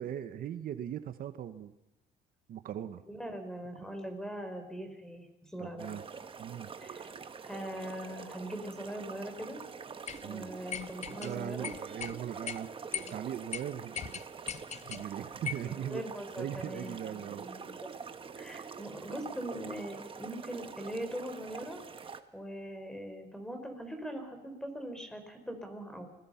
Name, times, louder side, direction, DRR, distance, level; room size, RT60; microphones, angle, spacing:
voice 1, 0.0-1.7 2.5-3.0 5.6-6.0 6.4-6.7 10.2-10.5 11.2-14.2 14.9-16.0 16.4-17.5, right 10 dB, 60° right, 11 dB, 1.2 m, -39 dB
voice 2, 3.1-5.3 5.5-6.0 6.8-7.1 7.4-9.6 10.2-11.7 15.6-17.9 18.4-21.8 22.3-26.1, equal, 5° left, 6 dB, 4.8 m, -41 dB
sound 1, 5.8-22.2, right 5 dB, 30° right, 1.5 m, -45 dB
sound 2, 10.1-10.2 10.7-11.3 11.6-12.1 12.5-12.6 12.9-13.2 13.5-13.6 14.0-15.0 15.5-15.7, left 8 dB, 40° left, 1.0 m, -38 dB
29.0 x 21.0 x 5.8 m, 0.95 s
cardioid pair, 110°, 17 cm